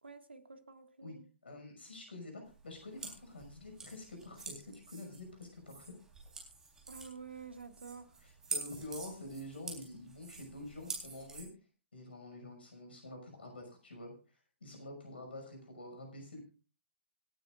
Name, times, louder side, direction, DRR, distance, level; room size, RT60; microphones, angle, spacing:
voice 1, 0.0-1.3 6.9-8.2, right 5 dB, 75° right, 8 dB, 1.9 m, -50 dB
voice 2, 1.4-5.9 8.2-11.5 11.9-14.1 14.6-16.4, left 2 dB, 65° left, 3 dB, 5.8 m, -47 dB
sound 1, 2.5-11.4, right 4 dB, 10° right, 3.8 m, -46 dB
26.5 x 9.5 x 2.5 m, 0.33 s
figure-of-eight pair, 125°, 6 cm